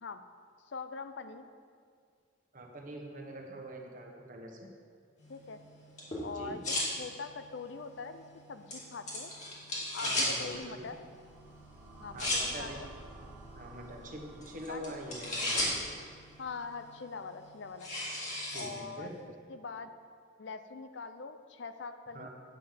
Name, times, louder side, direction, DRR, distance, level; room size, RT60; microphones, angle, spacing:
voice 1, 0.7-1.5 5.3-5.6 6.2-9.3 9.9-11.0 12.0-12.9 14.7-15.0 16.4-17.9 18.5-19.1 19.5-19.9 20.4-22.3, left 4 dB, 65° left, 10 dB, 0.5 m, -43 dB
voice 2, 2.5-4.7 6.3-6.6 10.0-10.8 12.0-12.9 13.5-15.8 18.5-19.1 22.1-22.3, right 1 dB, 40° right, 1 dB, 1.2 m, -44 dB
sound 1, 5.2-19.2, left 1 dB, 40° left, 2.4 m, -38 dB
sound 2, 10.5-16.7, right 2 dB, 10° right, 1.4 m, -53 dB
9.1 x 5.6 x 7.4 m, 2.1 s
head